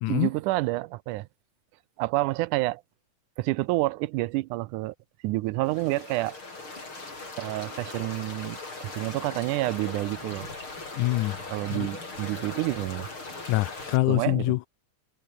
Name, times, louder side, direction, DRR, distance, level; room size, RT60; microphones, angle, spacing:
voice 1, 0.1-1.3 2.0-2.8 3.4-5.0 5.2-6.4 7.4-10.5 11.5-13.1 14.1-14.6, right 19 dB, 85° right, 2.1 m, -28 dB
sound 1, 5.6-14.0, left 3 dB, 40° left, 7.2 m, -39 dB
voice 2, 10.9-11.4 11.7-11.9 13.5-14.7, left 19 dB, 90° left, 2.1 m, -25 dB
omnidirectional pair, 3.5 m